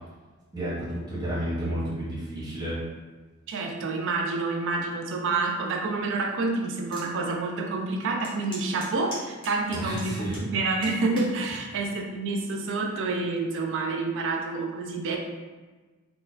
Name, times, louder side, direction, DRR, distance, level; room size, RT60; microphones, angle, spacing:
voice 1, 0.5-2.8 9.7-10.4, right 1 dB, 20° right, -9 dB, 0.8 m, -31 dB
voice 2, 3.5-10.1 10.4-15.2, right 3 dB, 60° right, 1 dB, 0.4 m, -28 dB
sound 1, 6.9-7.1 7.6-7.7 8.2-10.5 10.8-11.3 12.1-12.4, equal, 25° left, 0.8 m, -41 dB
2.4 x 2.3 x 2.3 m, 1.3 s
head